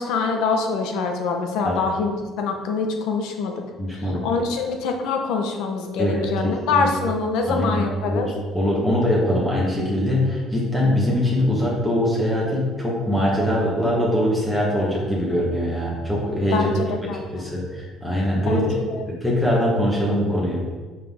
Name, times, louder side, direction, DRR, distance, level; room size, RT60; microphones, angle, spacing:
voice 1, 0.0-3.5 4.2-8.3 16.5-17.2 18.5-19.0, left 4 dB, 75° left, 3 dB, 1.1 m, -24 dB
voice 2, 3.8-4.2 6.0-6.2 6.7-6.9 7.5-18.7 19.2-20.6, equal, 5° left, -5 dB, 1.2 m, -22 dB
7.7 x 5.5 x 3.6 m, 1.4 s
cardioid pair, 175°, 0 cm